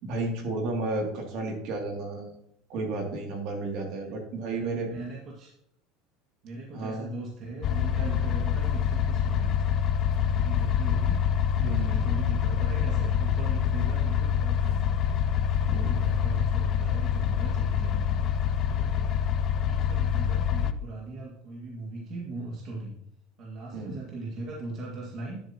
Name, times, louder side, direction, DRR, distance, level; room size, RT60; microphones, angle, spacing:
voice 1, 0.0-2.3 2.7-4.9 6.7-7.1 11.6-12.1 15.7-16.0 23.7-24.0, right 2 dB, 60° right, 1 dB, 2.7 m, -32 dB
voice 2, 3.9-5.5 6.4-9.6 10.1-11.2 11.6-15.0 15.6-18.3 18.6-19.2 19.6-22.9 23.4-25.4, right 2 dB, 45° right, -2 dB, 2.0 m, -39 dB
sound 1, 7.6-20.7, left 8 dB, 40° left, 0.5 m, -26 dB
12.0 x 7.5 x 3.0 m, 0.73 s
supercardioid pair, 135°, 0 cm